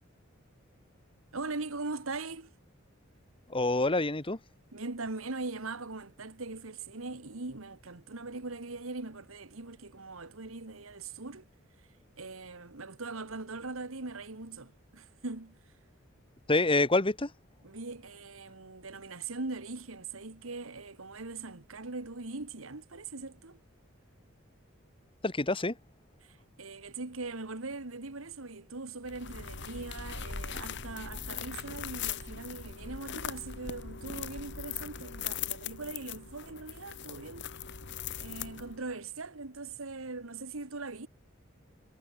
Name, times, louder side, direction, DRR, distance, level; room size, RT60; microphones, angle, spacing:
voice 1, 1.3-2.5 4.7-11.4 12.2-15.6 17.6-23.6 26.2-37.5 38.2-41.1, right 3 dB, 90° right, 1.7 m, -41 dB
voice 2, 3.5-4.4 16.5-17.3 25.2-25.8, left 2 dB, 25° left, 1.8 m, -27 dB
sound 1, 29.0-38.9, left 7 dB, 60° left, 1.6 m, -40 dB
head